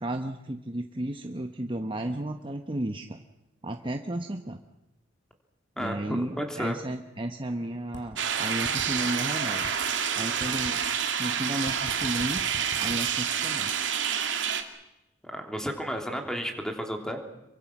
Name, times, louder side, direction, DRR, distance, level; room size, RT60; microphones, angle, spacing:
voice 1, 0.0-3.2 3.6-4.6 5.8-9.7 10.1-10.8 11.2-12.4 12.8-13.8, right 1 dB, 30° right, 4 dB, 1.1 m, -33 dB
voice 2, 5.8-6.8 15.3-17.2, equal, 5° left, 3 dB, 3.1 m, -32 dB
sound 1, 7.9-8.0 8.6-8.9 9.6-9.7 10.4-10.7 11.7-13.0, left 1 dB, 65° left, 5.9 m, -41 dB
sound 2, 8.2-14.6, right 7 dB, 85° right, 2.3 m, -28 dB
28.0 x 24.0 x 6.1 m, 0.93 s
head